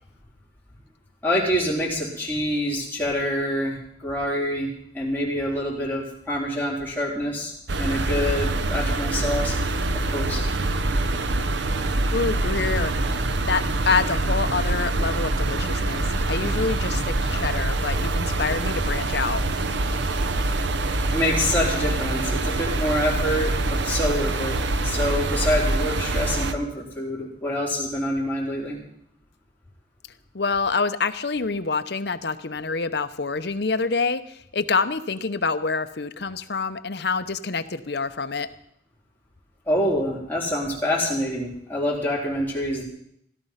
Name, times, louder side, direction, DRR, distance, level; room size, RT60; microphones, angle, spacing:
voice 1, 1.2-4.7 4.9-9.6 10.1-10.4 21.1-28.8 39.7-42.8, left 1 dB, 10° left, -5 dB, 3.9 m, -26 dB
sound 1, 7.7-26.5, right 2 dB, 75° right, 0.9 m, -25 dB
voice 2, 12.1-13.2 13.5-19.4 30.3-38.5, left 4 dB, 65° left, 11 dB, 0.8 m, -26 dB
16.5 x 12.0 x 5.7 m, 0.72 s
head